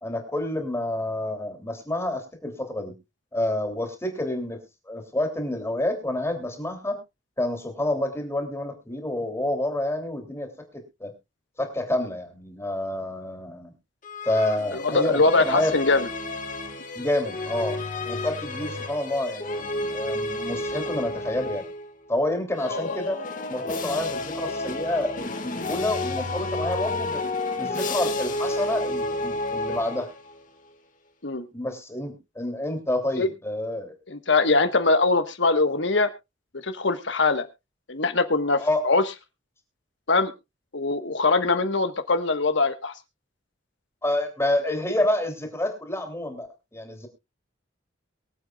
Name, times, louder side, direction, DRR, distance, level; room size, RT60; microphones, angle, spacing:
voice 1, 0.0-2.9 3.3-4.6 4.9-7.0 7.4-11.1 11.6-13.7 14.2-15.8 16.9-17.8 18.0-21.6 22.1-23.2 23.5-27.2 27.6-30.1 31.5-34.0 38.6-38.8 44.0-46.5 46.7-47.1, left 1 dB, 15° left, 5 dB, 2.9 m, -28 dB
sound 1, 14.0-21.9 22.5-30.4, left 2 dB, 45° left, 1.7 m, -31 dB
voice 2, 14.7-16.1 22.6-23.0 31.2-31.4 33.2-33.3 34.1-36.1 36.6-37.5 37.9-39.0 40.1-40.3 40.7-42.9, left 3 dB, 70° left, 9 dB, 1.3 m, -22 dB
23.5 x 7.9 x 2.4 m, 0.25 s
head